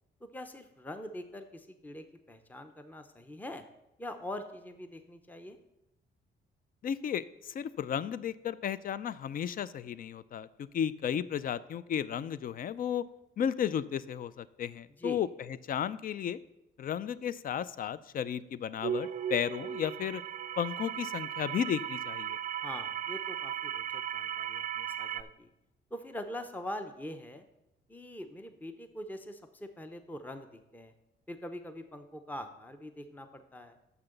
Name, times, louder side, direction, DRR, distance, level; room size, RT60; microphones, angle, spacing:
voice 1, 0.2-3.6 4.0-5.6 15.0-15.2 22.6-25.5 25.9-27.4 27.9-30.9 31.3-33.8, left 1 dB, 10° left, 8 dB, 0.7 m, -43 dB
voice 2, 6.8-10.5 10.7-13.0 13.4-15.3 15.7-16.4 16.8-20.2 20.6-22.4, left 9 dB, 45° left, 17 dB, 0.4 m, -33 dB
sound 1, 18.8-25.2, right 9 dB, 40° right, 0.4 m, -36 dB
6.8 x 5.9 x 6.6 m, 0.88 s
cardioid pair, 90°, 20 cm